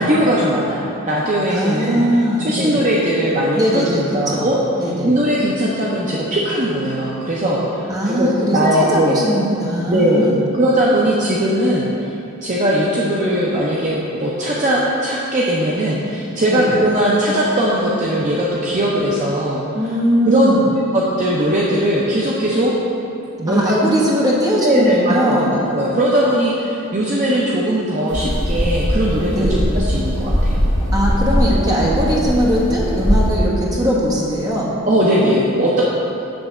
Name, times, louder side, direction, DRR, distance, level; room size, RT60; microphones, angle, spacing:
voice 1, 0.0-2.0 2.4-4.6 5.0-9.2 9.9-10.3 10.6-12.1 12.4-19.6 20.2-20.5 20.9-22.7 23.4-23.8 24.6-29.5 29.7-30.6 31.8-31.9 34.9-35.8, right 1 dB, 35° right, -5 dB, 0.6 m, -19 dB
voice 2, 1.5-2.8 3.6-4.5 4.8-5.1 7.9-10.5 16.5-16.7 19.7-20.7 23.5-25.6 29.3-29.6 30.9-34.7, equal, 15° right, -5 dB, 1.1 m, -19 dB
sound 1, 28.1-33.3, equal, 20° left, 1.5 m, -20 dB
7.8 x 3.4 x 6.0 m, 2.9 s
head